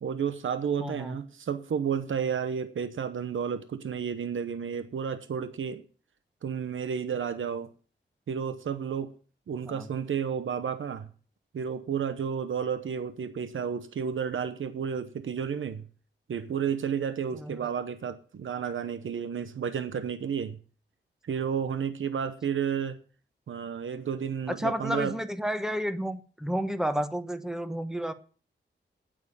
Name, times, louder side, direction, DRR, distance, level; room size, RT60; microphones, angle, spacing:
voice 1, 0.0-5.8 6.4-7.7 8.3-9.1 9.5-11.1 11.5-15.9 16.3-20.6 21.2-23.0 23.5-25.2, right 7 dB, 80° right, 0.9 m, -31 dB
voice 2, 0.8-1.2 9.6-9.9 17.3-17.7 24.5-28.1, equal, 5° right, 1.2 m, -31 dB
9.3 x 9.0 x 7.2 m
wide cardioid pair, 90°, 20 cm